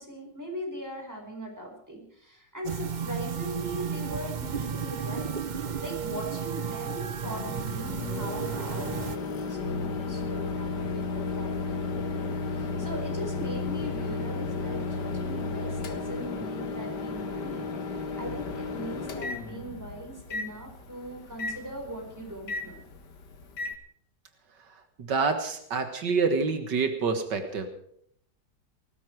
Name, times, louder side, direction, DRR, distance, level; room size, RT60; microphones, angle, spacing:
voice 1, 0.0-5.3 5.8-22.8, right 1 dB, 10° right, 2 dB, 4.8 m, -40 dB
sound 1, 2.6-9.2, right 7 dB, 50° right, 0.5 m, -33 dB
Microwave oven, 7.3-23.7, left 4 dB, 75° left, 2.2 m, -33 dB
voice 2, 25.0-27.7, right 4 dB, 80° right, 7 dB, 2.2 m, -27 dB
18.5 x 15.0 x 4.7 m, 0.69 s
omnidirectional pair, 1.9 m